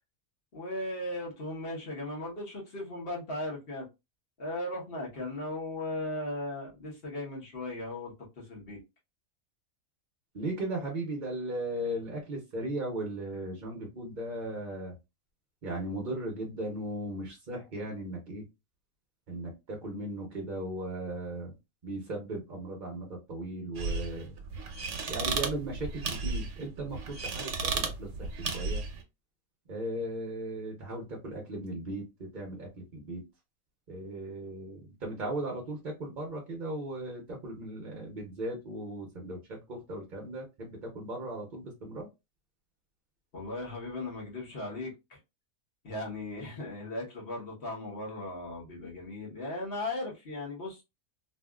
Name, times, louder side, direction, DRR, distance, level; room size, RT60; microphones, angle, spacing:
voice 1, 0.5-3.9 4.4-8.8 43.3-45.2 45.8-50.8, left 1 dB, 45° left, 1.4 m, -37 dB
voice 2, 10.3-14.9 15.6-18.4 19.3-21.5 21.8-24.3 25.1-28.8 29.7-33.2 33.9-42.1, right 1 dB, 45° right, 0.8 m, -37 dB
sound 1, 23.7-29.0, right 4 dB, 65° right, 1.0 m, -34 dB
3.3 x 2.4 x 2.3 m
omnidirectional pair, 1.4 m